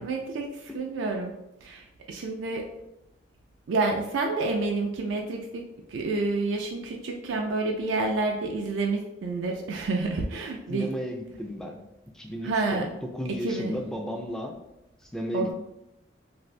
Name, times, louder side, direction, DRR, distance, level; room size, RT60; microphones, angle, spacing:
voice 1, 0.0-1.3 1.6-2.7 3.7-5.6 5.9-10.9 12.4-12.9 13.4-13.7 15.3-15.5, right 3 dB, 75° right, 1 dB, 0.4 m, -29 dB
voice 2, 10.7-11.8 12.1-14.6 15.1-15.5, left 1 dB, 5° left, 2 dB, 0.3 m, -34 dB
2.6 x 2.5 x 3.2 m, 0.87 s
head